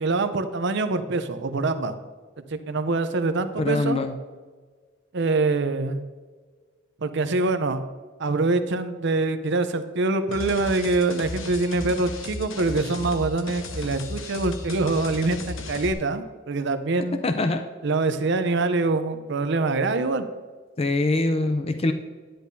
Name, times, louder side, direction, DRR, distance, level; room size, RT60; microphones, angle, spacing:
voice 1, 0.0-1.9 2.5-4.0 5.1-6.0 7.0-7.8 8.2-17.2 17.8-20.3, right 3 dB, 60° right, 10 dB, 0.6 m, -24 dB
voice 2, 3.6-4.1 17.2-17.6 20.8-21.9, left 2 dB, 30° left, 8 dB, 0.5 m, -23 dB
sound 1, 10.3-15.9, left 3 dB, 75° left, 1.0 m, -35 dB
10.5 x 10.0 x 2.7 m, 1.5 s
head